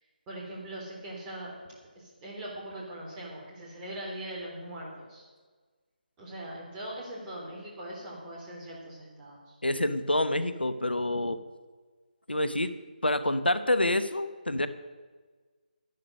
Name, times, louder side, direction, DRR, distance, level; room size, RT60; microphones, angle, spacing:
voice 1, 0.3-1.5 2.0-5.3 6.2-9.6, right 1 dB, 15° right, -4 dB, 3.5 m, -41 dB
voice 2, 9.6-11.4 12.3-12.7 13.0-14.7, left 1 dB, 90° left, 12 dB, 0.9 m, -27 dB
12.0 x 11.0 x 6.5 m, 1.4 s
figure-of-eight pair, 150°, 5 cm